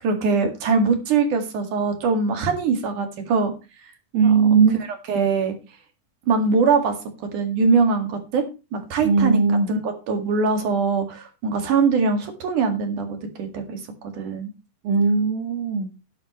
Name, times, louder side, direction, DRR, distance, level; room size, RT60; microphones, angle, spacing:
voice 1, 0.0-3.5 4.2-4.5 5.1-5.5 6.3-7.0 7.3-8.5 8.7-14.5, right 4 dB, 65° right, 6 dB, 3.4 m, -22 dB
voice 2, 4.1-4.8 9.0-9.7 14.8-15.9, right 5 dB, 85° right, 3 dB, 3.4 m, -18 dB
12.0 x 11.0 x 3.1 m, 0.28 s
omnidirectional pair, 4.1 m